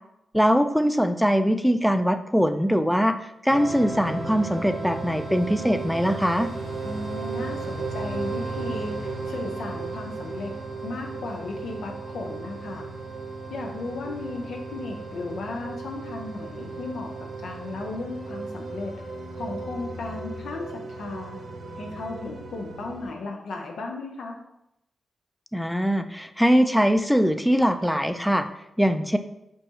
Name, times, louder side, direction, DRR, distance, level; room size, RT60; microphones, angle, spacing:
voice 1, 0.3-3.2 3.4-6.5 25.5-28.4 28.8-29.2, equal, ahead, 9 dB, 0.3 m, -22 dB
sound 1, 3.5-23.1, right 3 dB, 75° right, 0.8 m, -35 dB
voice 2, 6.8-10.5 10.8-12.9 13.5-17.1 17.4-18.9 19.3-21.4 21.8-24.4, left 3 dB, 80° left, 1 dB, 0.5 m, -35 dB
5.2 x 2.4 x 2.8 m, 0.86 s
supercardioid pair, 50°, 0 cm